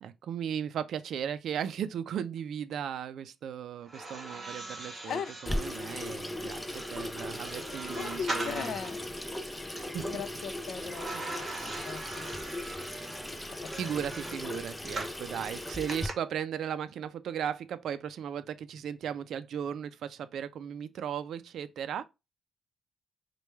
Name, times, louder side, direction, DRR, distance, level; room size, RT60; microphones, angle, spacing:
voice 1, 0.0-8.7 9.7-10.2 11.1-11.2 13.8-22.1, right 9 dB, 75° right, 0.3 m, -36 dB
sound 1, 3.8-9.0 10.9-15.2 15.9-16.1, right 2 dB, 30° right, 1.1 m, -41 dB
Water tap faucet / Sink (filling or washing), 5.4-16.1, left 1 dB, 10° left, 0.4 m, -38 dB
voice 2, 7.6-9.0 10.0-12.3 13.6-13.9 14.5-14.6, left 7 dB, 70° left, 0.4 m, -39 dB
4.4 x 2.2 x 3.1 m
cardioid pair, 120°, 0 cm